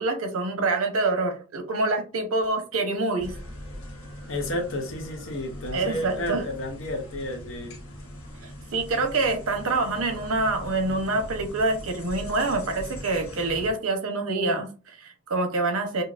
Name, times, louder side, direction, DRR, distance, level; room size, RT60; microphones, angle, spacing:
voice 1, 0.0-3.4 5.7-6.4 8.4-16.0, right 2 dB, 85° right, 0.9 m, -26 dB
sound 1, 3.2-13.7, equal, 85° left, 1.4 m, -41 dB
voice 2, 4.3-7.8, left 1 dB, 65° left, 0.9 m, -32 dB
5.6 x 2.0 x 2.5 m
head